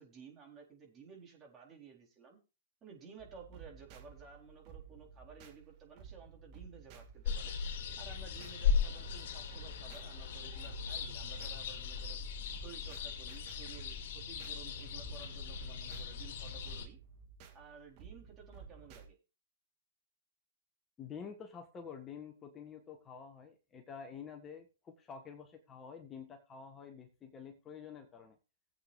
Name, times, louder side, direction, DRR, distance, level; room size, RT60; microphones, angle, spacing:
voice 1, 0.0-2.4 2.8-7.5 8.0-12.2 12.6-17.0 17.5-19.2, right 6 dB, 25° right, 0 dB, 4.0 m, -55 dB
sound 1, 3.2-19.1, right 7 dB, 45° right, 2.2 m, -54 dB
sound 2, 7.3-16.9, left 6 dB, 60° left, 3.3 m, -38 dB
voice 2, 21.0-28.3, left 6 dB, 20° left, 4 dB, 1.5 m, -49 dB
19.0 x 8.2 x 2.6 m, 0.30 s
hypercardioid pair, 120°, 0 cm